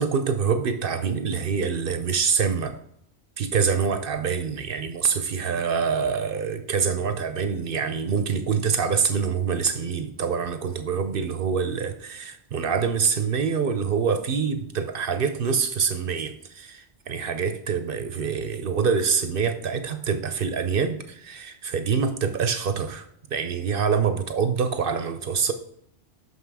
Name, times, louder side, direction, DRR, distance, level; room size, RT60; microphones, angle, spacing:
voice 1, 0.0-2.8 3.4-23.1 23.3-25.5, right 6 dB, 55° right, 9 dB, 0.7 m, -25 dB
6.2 x 5.6 x 4.7 m, 0.69 s
omnidirectional pair, 1.3 m